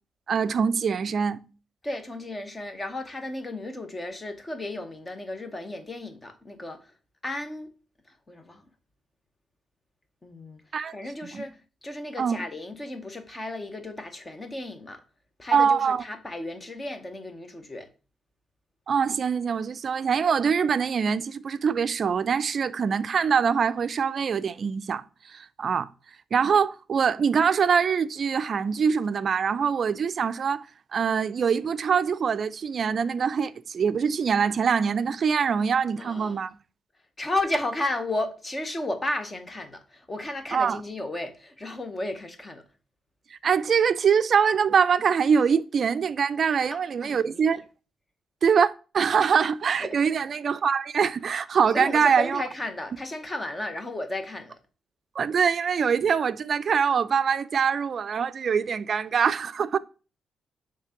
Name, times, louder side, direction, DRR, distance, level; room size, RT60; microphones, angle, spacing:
voice 1, 0.3-1.4 10.7-10.9 11.2-11.5 12.2-12.4 15.5-16.0 18.9-25.9 26.3-30.7 30.9-36.5 40.5-40.8 43.3-47.6 48.4-52.4 55.2-59.8, right 6 dB, 45° right, 0.4 m, -24 dB
voice 2, 1.8-6.9 7.2-7.7 8.3-8.7 10.2-10.6 10.9-15.0 15.4-17.9 35.9-36.4 37.2-42.6 46.7-47.4 49.8-50.0 51.7-54.6, left 2 dB, 20° left, 0.9 m, -33 dB
7.1 x 3.2 x 5.8 m
cardioid pair, 145°, 0 cm